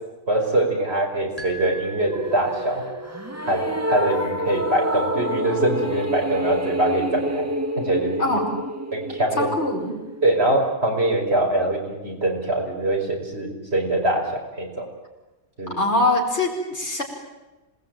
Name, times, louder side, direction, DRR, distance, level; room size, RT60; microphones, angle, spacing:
voice 1, 0.3-2.8 3.5-7.5 7.8-8.3 8.9-9.5 10.2-14.9 15.6-15.8, right 1 dB, 60° right, 1 dB, 5.5 m, -23 dB
sound 1, 1.4-2.9, equal, 30° left, 5.1 m, -39 dB
sound 2, 2.1-10.4, equal, 15° right, 1.9 m, -28 dB
voice 2, 8.2-8.6 9.4-10.0 15.8-17.0, left 2 dB, 65° left, 1 dB, 5.4 m, -23 dB
26.5 x 20.0 x 9.2 m, 1.1 s
omnidirectional pair, 1.2 m